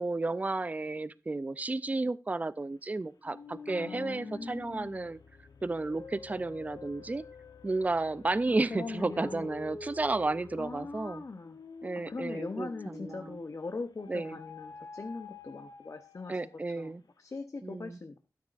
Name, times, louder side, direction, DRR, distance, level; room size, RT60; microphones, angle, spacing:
voice 1, 0.0-5.2 5.6-7.2 7.6-11.2 11.8-13.4 14.1-14.4 16.3-17.0 17.6-18.0, right 2 dB, 20° right, 0.4 m, -32 dB
sound 1, 3.2-13.4 14.0-16.7, left 4 dB, 90° left, 0.9 m, -48 dB
voice 2, 3.7-5.2 8.7-9.7 10.6-11.6 12.1-16.5 16.8-16.9 17.2-18.2, left 3 dB, 50° left, 0.7 m, -41 dB
12.5 x 9.5 x 2.5 m
wide cardioid pair, 95°, 7 cm